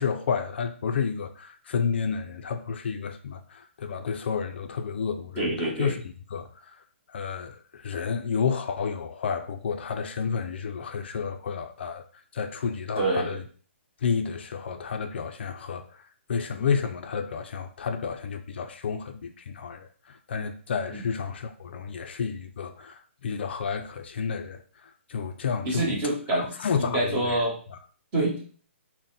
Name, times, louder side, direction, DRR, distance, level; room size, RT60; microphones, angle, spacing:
voice 1, 0.0-6.0 6.3-6.7 7.1-12.0 12.3-13.4 14.0-15.9 16.3-25.9 26.3-27.4 27.7-27.8, left 6 dB, 55° left, 0.4 m, -31 dB
voice 2, 5.4-6.0 13.0-13.4 20.9-21.1 25.6-27.6 28.1-28.4, right 2 dB, 20° right, 1.1 m, -27 dB
3.8 x 2.1 x 4.0 m
hypercardioid pair, 160°, 7 cm